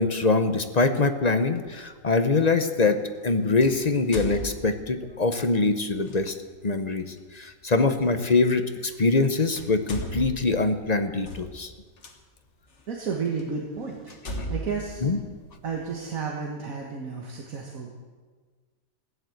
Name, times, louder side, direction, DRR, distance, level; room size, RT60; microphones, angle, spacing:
voice 1, 0.0-6.3 6.6-7.0 7.3-11.7 15.0-15.2, left 3 dB, 35° left, 8 dB, 0.8 m, -23 dB
sound 1, 1.5-1.7 3.6-5.1 6.0-6.2 8.1-8.2 9.1-9.3 9.5-12.1 12.8-12.9 13.4-13.5 14.1-15.9, equal, 55° left, 1.8 m, -37 dB
voice 2, 12.9-14.1 14.5-15.0 15.6-18.0, right 5 dB, 75° right, 0 dB, 2.0 m, -32 dB
16.0 x 10.5 x 7.9 m, 1.5 s
omnidirectional pair, 1.4 m